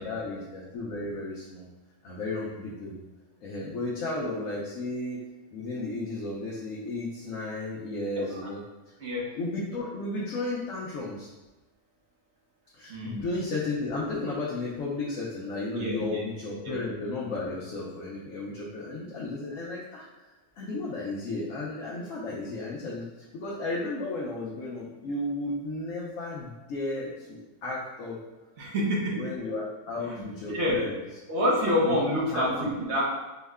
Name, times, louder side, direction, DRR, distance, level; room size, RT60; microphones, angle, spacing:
voice 1, 0.0-1.7 2.0-3.0 3.4-5.2 5.5-8.6 9.3-11.3 12.7-20.1 20.6-23.1 23.3-28.2 29.2-31.0 31.8-32.7, left 2 dB, 80° left, -6 dB, 1.1 m, -34 dB
voice 2, 8.2-8.5 9.0-9.2 12.9-13.3 15.7-16.2 16.6-16.8 28.6-29.2 30.0-30.8 31.3-33.1, equal, 60° right, -4 dB, 1.1 m, -28 dB
4.5 x 2.1 x 3.4 m, 1.1 s
omnidirectional pair, 1.3 m